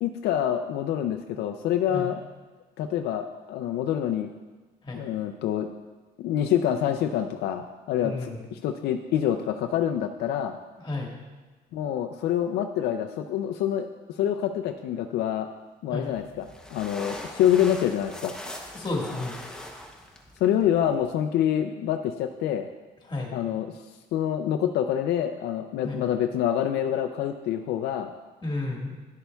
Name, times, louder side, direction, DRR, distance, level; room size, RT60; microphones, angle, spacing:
voice 1, 0.0-2.2 2.8-4.3 4.9-5.7 6.2-10.6 11.7-13.9 14.2-15.5 15.8-18.3 20.4-22.7 23.3-23.7 24.1-28.1, left 10 dB, 75° left, 6 dB, 0.4 m, -26 dB
voice 2, 8.0-8.4 10.8-11.1 15.9-16.1 18.7-19.4 23.1-23.3 25.8-26.0 28.4-28.9, left 2 dB, 25° left, 0 dB, 1.6 m, -31 dB
sound 1, 16.0-21.1, left 1 dB, 5° left, 0.7 m, -41 dB
10.5 x 6.7 x 2.3 m, 1.3 s
cardioid pair, 110°, 17 cm